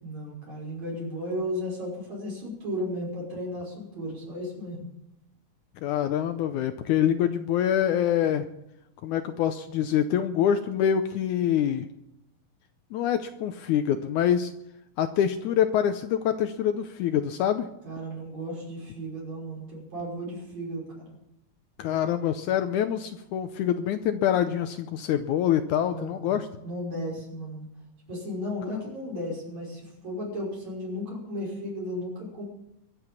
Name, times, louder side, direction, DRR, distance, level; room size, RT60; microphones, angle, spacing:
voice 1, 0.0-4.9 17.8-21.2 25.9-27.7 28.1-32.4, equal, 55° right, -3 dB, 7.0 m, -34 dB
voice 2, 5.8-8.5 9.0-11.9 12.9-14.5 15.0-17.7 21.8-26.5 28.7-28.8, left 9 dB, 75° left, 9 dB, 2.0 m, -25 dB
23.5 x 7.8 x 7.1 m, 0.81 s
omnidirectional pair, 3.9 m